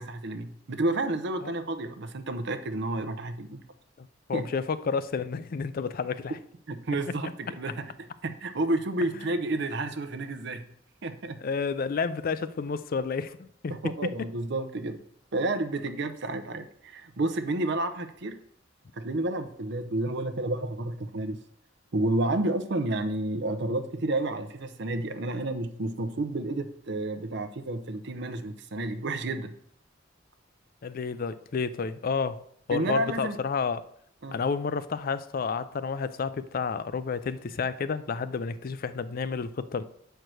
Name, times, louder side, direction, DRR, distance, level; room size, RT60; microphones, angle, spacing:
voice 1, 0.0-3.6 4.3-4.5 6.7-7.8 8.2-10.6 11.0-11.4 13.7-15.0 15.3-18.4 18.9-21.4 21.9-29.5 32.7-33.4 34.2-34.4, right 2 dB, 65° right, 0.7 m, -30 dB
voice 2, 4.0-6.4 9.2-9.3 11.4-14.1 30.8-33.8 34.3-39.8, left 5 dB, 50° left, 0.4 m, -31 dB
6.5 x 4.6 x 6.2 m
head